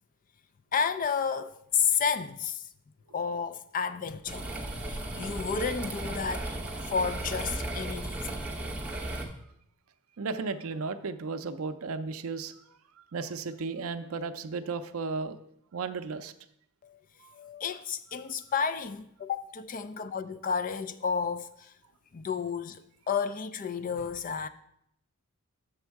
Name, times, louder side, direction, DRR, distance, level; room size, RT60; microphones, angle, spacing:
voice 1, 0.7-2.7 3.1-4.5 4.9-6.5 6.9-8.7 16.8-17.0 17.3-21.7 22.1-22.8 23.1-24.5, left 6 dB, 35° left, 0.4 m, -31 dB
sound 1, 4.3-9.3, right 1 dB, 5° right, 0.8 m, -35 dB
voice 2, 10.2-12.5 13.1-15.4 15.7-16.3 17.2-17.3, right 4 dB, 65° right, 0.5 m, -34 dB
6.6 x 6.2 x 4.6 m
head